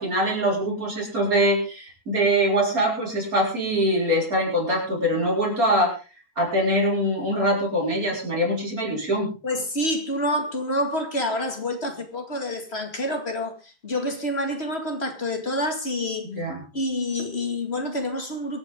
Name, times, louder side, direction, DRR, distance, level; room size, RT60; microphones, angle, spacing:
voice 1, 0.0-5.9 6.4-9.3 16.2-16.6, equal, 65° right, 5.9 m, -23 dB
voice 2, 9.4-16.3 16.7-18.6, left 1 dB, 40° left, 2.5 m, -27 dB
24.0 x 9.0 x 3.8 m
omnidirectional pair, 1.6 m